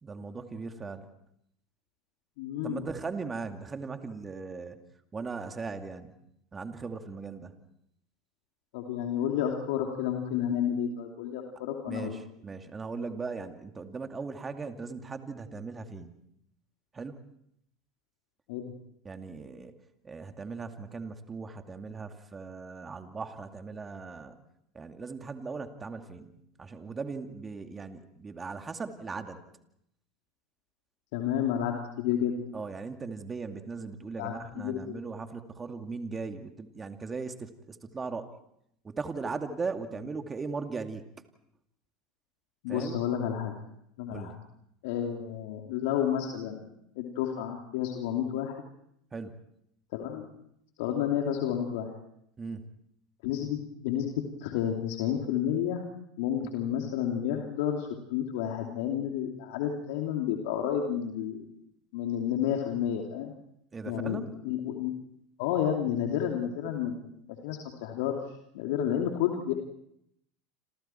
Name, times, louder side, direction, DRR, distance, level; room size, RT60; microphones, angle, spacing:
voice 1, 0.0-1.1 2.6-4.9 5.1-6.2 6.5-7.6 11.8-16.2 16.9-17.2 19.0-19.7 20.0-24.4 24.7-26.3 26.6-29.4 32.5-38.3 38.8-41.0 42.7-43.0 44.1-44.4 49.1-49.3 52.4-52.7 56.4-56.5 63.7-64.4, right 4 dB, 20° right, 6 dB, 2.4 m, -38 dB
voice 2, 2.4-2.8 8.7-12.2 18.5-18.7 31.1-32.5 34.2-34.9 42.6-43.5 44.0-44.4 44.8-46.7 47.0-48.5 49.9-50.3 50.8-51.9 53.2-55.8 56.2-61.4 61.9-63.3 63.9-64.2 64.4-64.9 65.4-67.0 67.4-68.2 68.5-69.5, left 9 dB, 65° left, 1 dB, 2.9 m, -30 dB
29.5 x 27.0 x 4.6 m, 0.75 s
hypercardioid pair, 85°, 0 cm